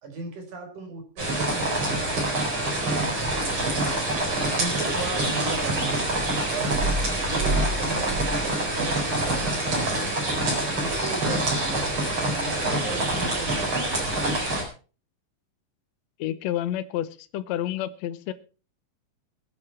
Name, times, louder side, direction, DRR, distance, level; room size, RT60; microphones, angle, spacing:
voice 1, 0.0-6.0 6.5-6.8 7.2-10.2 10.6-12.0 12.3-14.3, right 3 dB, 65° right, 4 dB, 5.2 m, -37 dB
sound 1, 1.2-14.6, right 1 dB, 40° right, 5.0 m, -26 dB
voice 2, 16.2-17.1 17.3-18.3, left 12 dB, 70° left, 11 dB, 1.9 m, -29 dB
21.5 x 8.8 x 4.4 m, 0.37 s
omnidirectional pair, 3.8 m